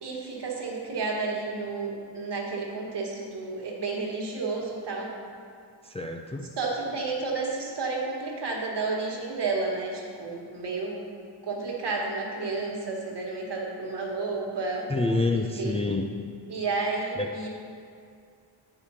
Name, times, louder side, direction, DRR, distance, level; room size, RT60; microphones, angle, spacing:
voice 1, 0.0-5.1 6.6-11.1 11.4-14.9 15.3-15.8 16.5-17.5, right 3 dB, 65° right, -1 dB, 1.5 m, -31 dB
voice 2, 5.9-6.5 14.9-16.1 17.2-17.3, left 2 dB, 15° left, 2 dB, 0.3 m, -27 dB
9.0 x 5.0 x 5.5 m, 2.3 s
wide cardioid pair, 130°, 45 cm